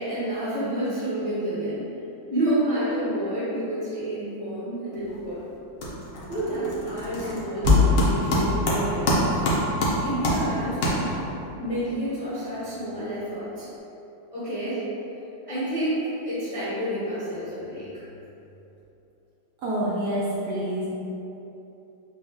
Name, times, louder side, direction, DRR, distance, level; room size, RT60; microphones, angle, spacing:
voice 1, 0.0-1.9 2.3-5.4 6.3-9.4 10.0-11.1 11.6-13.7 14.3-14.8 15.5-18.0, right 1 dB, 25° left, -12 dB, 0.8 m, -29 dB
sound 1, 4.9-5.3 5.6-11.4, equal, 60° left, 0.9 m, -26 dB
sound 2, 7.6-12.0, left 3 dB, 40° right, 1.5 m, -27 dB
voice 2, 19.6-20.9, right 1 dB, 65° right, -7 dB, 1.1 m, -27 dB
4.9 x 2.3 x 3.7 m, 2.9 s
omnidirectional pair, 2.1 m